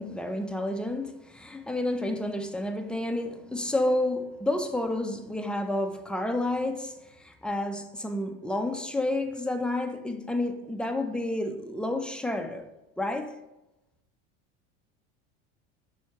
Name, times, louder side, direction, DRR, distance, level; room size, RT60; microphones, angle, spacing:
voice 1, 0.0-12.7 13.0-13.4, left 1 dB, 5° left, 0.5 m, -30 dB
6.1 x 3.5 x 4.7 m
supercardioid pair, 95°, 34 cm